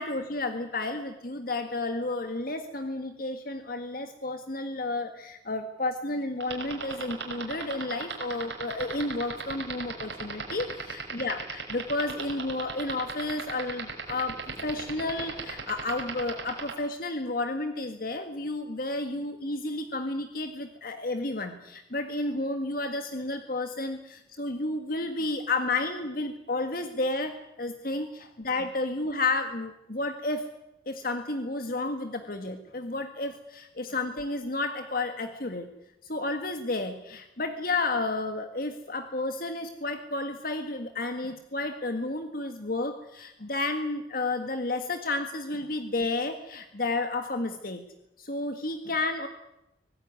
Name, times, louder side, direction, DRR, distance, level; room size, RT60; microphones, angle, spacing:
voice 1, 0.0-30.5 30.9-35.7 36.1-47.8 48.2-49.3, left 2 dB, 50° left, 7 dB, 1.8 m, -31 dB
sound 1, 6.4-16.7, right 5 dB, 80° right, 6.0 m, -34 dB
25.0 x 18.5 x 9.5 m, 0.89 s
head